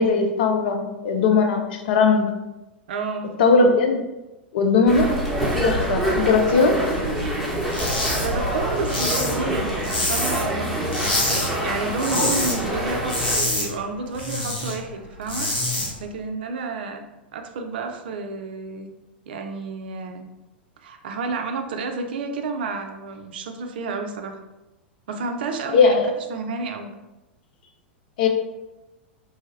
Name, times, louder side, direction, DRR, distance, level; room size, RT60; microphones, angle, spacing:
voice 1, 0.0-2.3 3.4-4.0 4.5-5.2 5.6-6.8 25.7-26.1 28.2-28.3, left 4 dB, 55° left, 5 dB, 0.5 m, -19 dB
voice 2, 2.9-3.4 8.2-15.5 16.0-17.0 17.3-18.9 19.3-20.3 20.8-24.4 25.1-26.0 26.3-26.9, right 4 dB, 60° right, 5 dB, 0.4 m, -30 dB
sound 1, 4.9-13.4, equal, ahead, 1.0 m, -26 dB
sound 2, 7.7-8.3 8.5-10.6 10.9-11.5 11.8-12.6 12.9-14.7 15.1-15.9, left 1 dB, 75° left, 1.2 m, -26 dB
3.3 x 2.2 x 3.2 m, 1.0 s
figure-of-eight pair, 95°, 6 cm